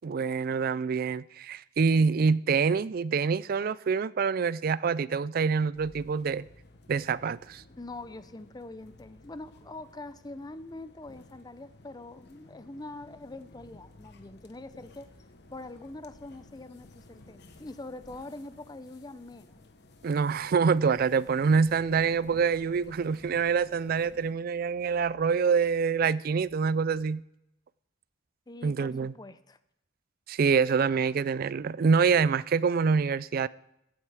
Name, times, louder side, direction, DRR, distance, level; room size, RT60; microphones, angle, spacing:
voice 1, 0.0-6.4 6.9-7.6 20.0-27.2 28.6-29.1 30.3-33.5, right 5 dB, 45° right, 0.3 m, -26 dB
sound 1, 5.7-24.3, left 2 dB, 55° left, 1.0 m, -55 dB
voice 2, 7.7-15.1 15.5-19.6 28.5-29.6, left 2 dB, 20° left, 0.5 m, -44 dB
15.5 x 8.9 x 4.7 m
head